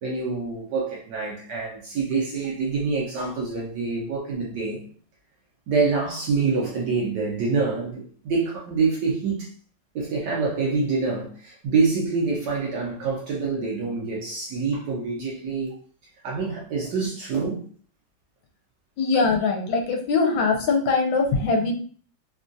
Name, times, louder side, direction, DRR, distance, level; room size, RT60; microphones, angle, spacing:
voice 1, 0.0-4.8 5.7-9.5 9.9-15.8 16.2-17.6, right 4 dB, 65° right, 1.2 m, -26 dB
voice 2, 19.0-21.7, left 4 dB, 70° left, 1.3 m, -22 dB
3.5 x 2.3 x 2.6 m
omnidirectional pair, 2.3 m